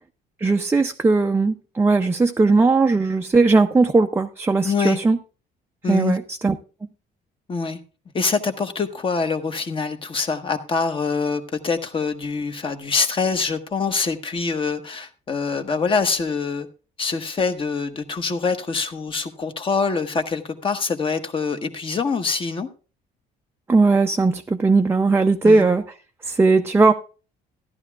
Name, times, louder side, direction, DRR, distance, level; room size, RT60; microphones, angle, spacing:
voice 1, 0.4-5.2 5.9-6.5 23.7-25.8 26.2-26.9, right 3 dB, 15° right, 0.5 m, -18 dB
voice 2, 4.6-5.0 5.8-6.2 7.5-7.8 8.1-16.7 17.0-22.7 25.4-25.7, left 4 dB, 30° left, 1.1 m, -24 dB
14.0 x 11.0 x 2.3 m
cardioid pair, 110°, 17 cm